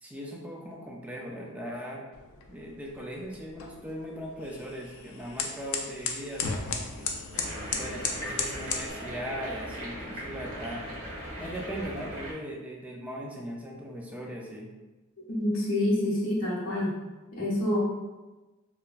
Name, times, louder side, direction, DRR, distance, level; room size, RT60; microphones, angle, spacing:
voice 1, 0.0-2.0 2.5-7.1 7.7-10.8 11.4-14.7, equal, 5° right, -1 dB, 0.3 m, -39 dB
sound 1, 2.1-8.9, left 5 dB, 90° left, 0.4 m, -36 dB
sound 2, 7.3-12.3, equal, 65° right, 0.9 m, -39 dB
voice 2, 15.3-17.0 17.3-17.8, left 1 dB, 70° left, -5 dB, 0.8 m, -27 dB
2.9 x 2.2 x 2.4 m, 1.2 s
head